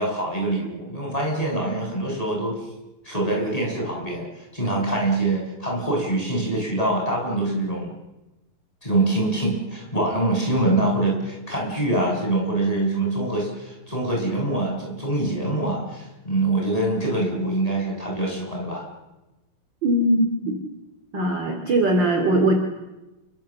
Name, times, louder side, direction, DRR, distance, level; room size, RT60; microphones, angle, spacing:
voice 1, 0.0-2.6 3.0-7.9 8.8-18.8, right 2 dB, 10° left, -1 dB, 7.4 m, -24 dB
voice 2, 19.8-20.6 21.1-22.5, right 1 dB, 35° right, 4 dB, 3.1 m, -20 dB
28.5 x 25.0 x 7.5 m, 1.0 s
omnidirectional pair, 4.1 m